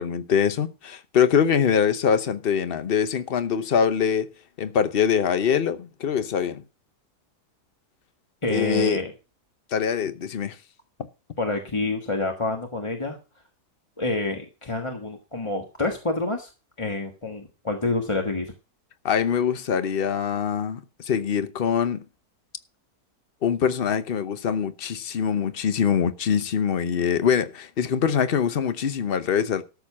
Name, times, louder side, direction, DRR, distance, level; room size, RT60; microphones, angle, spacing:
voice 1, 0.0-4.3 4.6-6.6 8.5-9.0 9.7-10.6 11.0-11.1 19.0-22.0 23.4-29.6, left 7 dB, 45° left, 0.9 m, -23 dB
voice 2, 8.4-9.1 11.4-13.2 14.0-16.5 16.8-18.5, left 2 dB, 20° left, 1.3 m, -27 dB
13.0 x 7.1 x 6.0 m
omnidirectional pair, 1.7 m